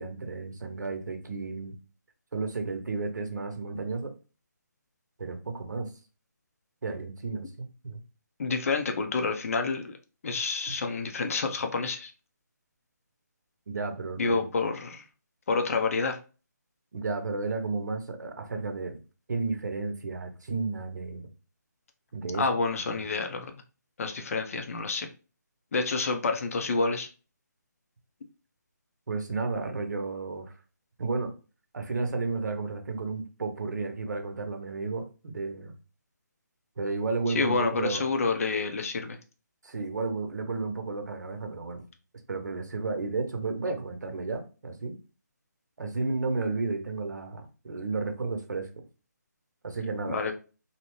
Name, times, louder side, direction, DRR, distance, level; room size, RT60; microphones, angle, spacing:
voice 1, 0.0-1.7 2.3-4.1 5.2-5.9 6.8-8.0 10.7-10.8 13.7-14.5 16.9-19.0 19.3-21.3 22.1-22.4 22.8-23.1 29.1-30.5 31.0-31.3 31.7-35.7 36.8-38.1 39.6-41.8 42.3-45.0 45.8-48.7 49.6-50.2, right 3 dB, 70° right, 0.7 m, -32 dB
voice 2, 8.4-10.0 10.2-12.1 14.2-15.0 15.5-16.2 22.4-23.5 24.0-25.1 25.7-27.1 37.3-39.2 50.1-50.3, left 4 dB, 50° left, 0.5 m, -28 dB
2.7 x 2.0 x 2.9 m
figure-of-eight pair, 160°, 10 cm